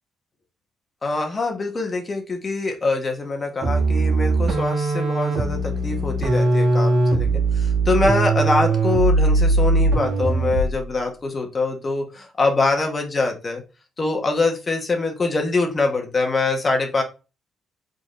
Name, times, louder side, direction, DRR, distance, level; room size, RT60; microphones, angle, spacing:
voice 1, 1.0-13.6 14.0-17.0, left 3 dB, 30° left, 3 dB, 1.2 m, -24 dB
sound 1, 3.6-10.8, right 3 dB, 60° right, 1.6 m, -20 dB
4.8 x 3.8 x 2.5 m, 0.30 s
cardioid pair, 125°, 0 cm